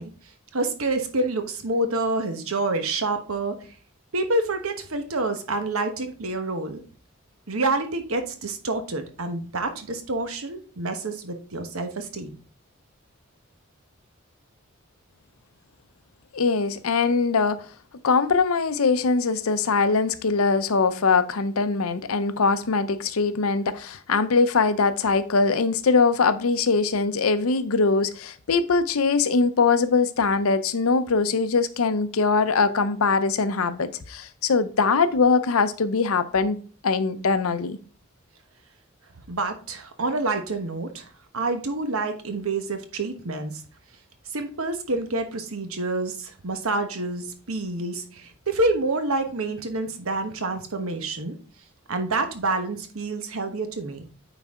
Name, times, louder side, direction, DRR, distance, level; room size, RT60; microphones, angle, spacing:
voice 1, 0.0-3.7 4.1-6.8 7.5-12.3 39.3-43.6 44.3-51.4 51.9-54.0, right 2 dB, 85° right, 1.2 m, -28 dB
voice 2, 16.3-17.6 18.0-36.6 36.8-37.8, left 4 dB, 85° left, 0.6 m, -22 dB
9.2 x 4.1 x 3.6 m
head